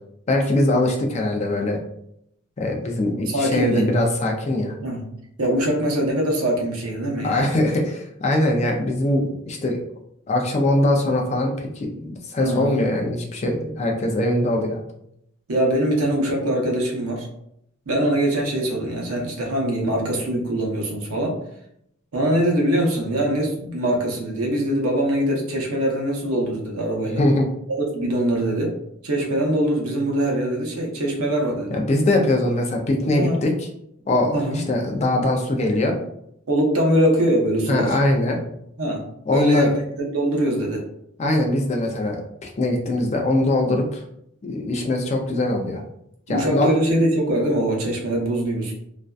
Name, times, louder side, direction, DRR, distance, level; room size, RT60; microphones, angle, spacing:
voice 1, 0.3-1.8 2.6-4.7 7.2-9.8 10.3-14.8 27.0-27.5 31.7-33.5 34.1-36.0 37.7-38.4 39.3-39.7 41.2-44.0 44.4-45.8 46.3-46.7, left 1 dB, 30° left, 1 dB, 0.3 m, -22 dB
voice 2, 3.3-3.9 4.8-5.0 5.4-7.5 12.4-12.8 15.5-17.3 17.9-21.4 22.1-27.2 27.7-28.7 29.0-31.8 33.1-33.4 34.3-34.6 36.5-38.0 38.3-38.4 38.8-39.0 39.3-40.8 46.3-48.7, right 1 dB, 80° right, 0 dB, 0.7 m, -22 dB
2.5 x 2.2 x 2.3 m, 0.75 s
head